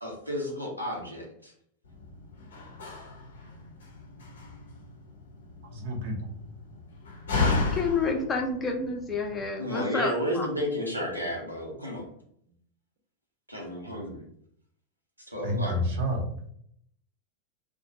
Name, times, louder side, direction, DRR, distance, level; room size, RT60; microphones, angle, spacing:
voice 1, 0.0-1.5 9.6-12.0 13.5-14.2 15.3-15.8, equal, 90° right, -2 dB, 0.7 m, -32 dB
Slam, 1.8-9.5, left 3 dB, 65° left, 0.6 m, -34 dB
voice 2, 5.6-6.3 15.4-16.2, equal, 55° right, 2 dB, 0.6 m, -29 dB
voice 3, 7.7-10.5, left 4 dB, 20° left, 2 dB, 0.5 m, -29 dB
2.4 x 2.2 x 2.6 m, 0.67 s
figure-of-eight pair, 90°, 0 cm